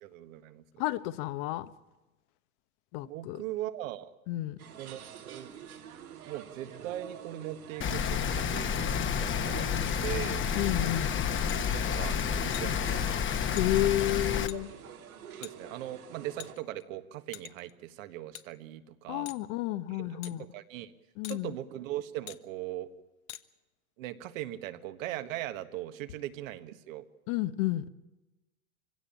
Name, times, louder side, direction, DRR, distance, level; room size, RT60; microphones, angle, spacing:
voice 1, 0.0-0.8 3.0-4.1 4.8-5.5 6.2-9.7 10.0-10.4 11.7-12.8 15.4-19.3 19.9-20.9 21.3-22.9 24.0-27.0, right 14 dB, 70° right, 1.7 m, -40 dB
voice 2, 0.8-1.7 2.9-3.4 4.3-4.6 10.5-11.1 13.6-14.7 19.1-20.4 21.2-21.6 27.3-27.9, left 15 dB, 55° left, 1.2 m, -31 dB
sound 1, 4.6-16.5, right 8 dB, 90° right, 3.0 m, -48 dB
Rain, 7.8-14.5, left 7 dB, 30° left, 1.3 m, -30 dB
sound 2, 11.5-11.6 12.5-12.8 13.6-13.7 14.5-14.6 15.4-15.5 16.4-16.8 17.3-17.7 18.3-18.5 19.3-19.4 20.2-20.3 21.2-21.4 22.3-22.4 23.3-23.4, left 14 dB, 70° left, 1.1 m, -44 dB
24.5 x 16.5 x 8.7 m
hypercardioid pair, 105°, 42 cm